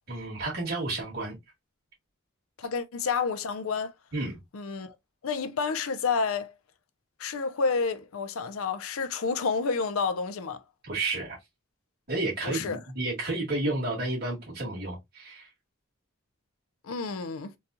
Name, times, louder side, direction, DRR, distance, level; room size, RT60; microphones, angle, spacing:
voice 1, 0.1-1.4 4.1-4.4 10.8-11.4 12.1-15.5, right 2 dB, 45° right, 2.0 m, -31 dB
voice 2, 2.6-3.9 4.5-4.9 5.2-6.5 7.2-10.6 12.4-12.8 16.8-17.5, left 5 dB, 80° left, 0.5 m, -29 dB
4.0 x 2.3 x 2.5 m
head